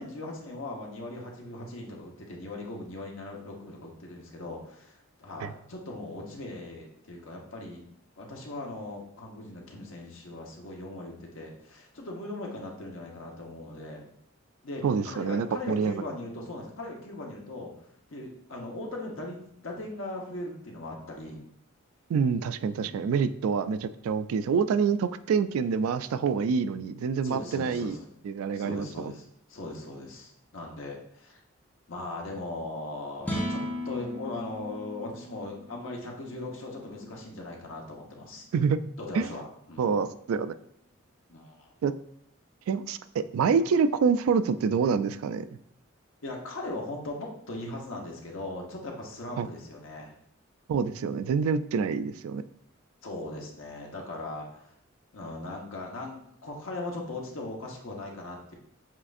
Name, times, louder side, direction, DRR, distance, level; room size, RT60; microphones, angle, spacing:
voice 1, 0.0-7.8 8.2-14.0 14.6-17.7 18.1-21.4 22.8-23.1 27.2-28.1 28.5-29.2 29.5-31.4 31.9-33.6 33.8-38.4 39.0-39.4 39.7-40.1 41.3-41.7 46.2-50.1 53.0-54.6 55.1-58.5, left 2 dB, 70° left, 0 dB, 1.0 m, -39 dB
voice 2, 14.8-15.9 22.1-28.0 28.2-29.1 38.5-38.8 39.1-39.3 39.8-40.5 41.8-41.9 42.7-45.5 49.4-49.5 50.7-52.4, right 6 dB, 90° right, 14 dB, 0.3 m, -26 dB
sound 1, 33.2-39.6, left 1 dB, 5° left, 0.5 m, -38 dB
7.3 x 2.5 x 2.5 m, 0.71 s
head